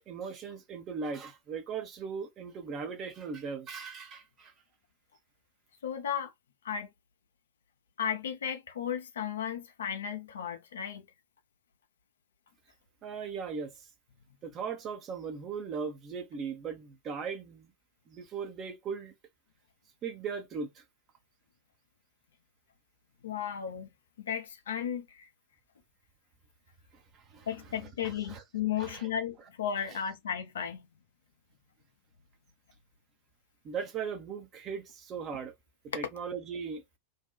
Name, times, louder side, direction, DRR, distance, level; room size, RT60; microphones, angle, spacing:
voice 1, 0.0-4.5 13.0-13.9 14.4-17.7 18.1-19.1 20.0-20.8 26.9-28.4 28.8-29.1 29.9-30.0 33.6-35.5 35.8-36.8, right 6 dB, 30° right, 0.7 m, -38 dB
voice 2, 5.8-6.3 6.6-6.9 8.0-11.1 23.2-23.9 24.2-25.3 27.5-30.9, left 8 dB, 65° left, 0.5 m, -34 dB
2.7 x 2.2 x 2.2 m
figure-of-eight pair, 90°, 0 cm